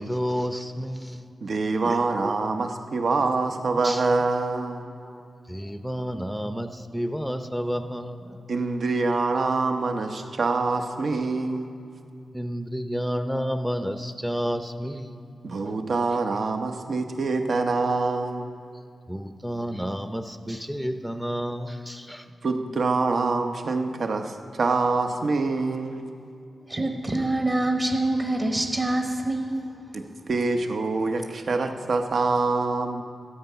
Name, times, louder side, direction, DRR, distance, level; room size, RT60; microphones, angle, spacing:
voice 1, 0.0-1.2 1.8-2.3 2.6-2.8 3.8-4.0 5.0-8.4 11.4-11.6 12.3-15.3 15.6-15.8 19.1-22.2, equal, ahead, 8 dB, 0.6 m, -31 dB
voice 2, 1.4-4.9 8.5-11.8 15.4-18.5 22.4-26.1 29.9-33.0, right 3 dB, 65° right, 6 dB, 0.9 m, -25 dB
voice 3, 26.7-29.8, right 2 dB, 30° right, 3 dB, 1.1 m, -25 dB
13.5 x 8.2 x 5.7 m, 2.4 s
cardioid pair, 70°, 0 cm